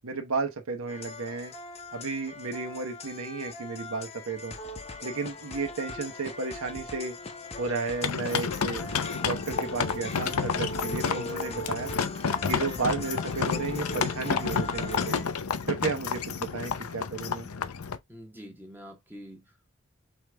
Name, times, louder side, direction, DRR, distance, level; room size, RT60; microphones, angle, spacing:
voice 1, 0.0-1.5 1.9-4.6 5.0-7.2 7.6-8.8 9.2-11.9 12.5-15.2 15.7-17.5, right 4 dB, 75° right, 0.9 m, -33 dB
sound 1, 0.9-15.3, left 2 dB, 30° left, 0.8 m, -40 dB
sound 2, 8.0-18.0, left 6 dB, 90° left, 0.6 m, -30 dB
voice 2, 18.1-19.7, equal, 10° right, 1.0 m, -46 dB
4.7 x 3.4 x 3.2 m
head